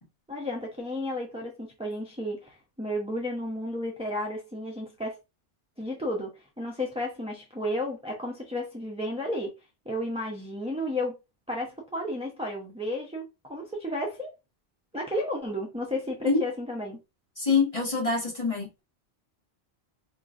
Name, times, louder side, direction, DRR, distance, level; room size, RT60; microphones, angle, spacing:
voice 1, 0.3-5.2 5.8-6.3 6.6-9.5 9.9-11.1 11.5-13.2 13.5-14.3 14.9-17.0, left 1 dB, 5° right, 0.8 m, -32 dB
voice 2, 17.4-18.8, left 4 dB, 30° left, 1.9 m, -25 dB
4.8 x 3.0 x 2.6 m
omnidirectional pair, 1.1 m